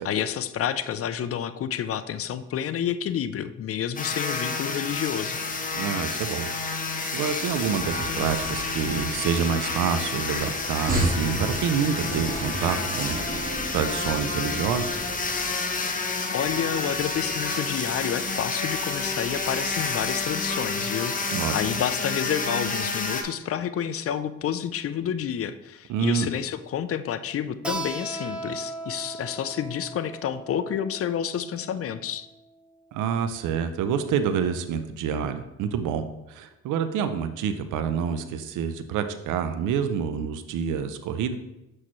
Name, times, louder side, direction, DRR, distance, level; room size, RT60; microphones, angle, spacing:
voice 1, 0.0-5.4 16.3-32.3, left 9 dB, 50° left, 13 dB, 0.5 m, -29 dB
sound 1, 4.0-23.2, left 3 dB, 25° left, 0.9 m, -29 dB
voice 2, 5.7-13.2 13.7-15.0 21.3-21.6 25.9-26.3 32.9-41.4, right 7 dB, 85° right, 9 dB, 0.5 m, -27 dB
sound 2, 7.6-15.5, right 2 dB, 30° right, 1.6 m, -33 dB
Keyboard (musical), 27.6-32.9, right 2 dB, 5° right, 0.8 m, -38 dB
6.3 x 5.7 x 3.1 m, 0.94 s
cardioid pair, 90°, 30 cm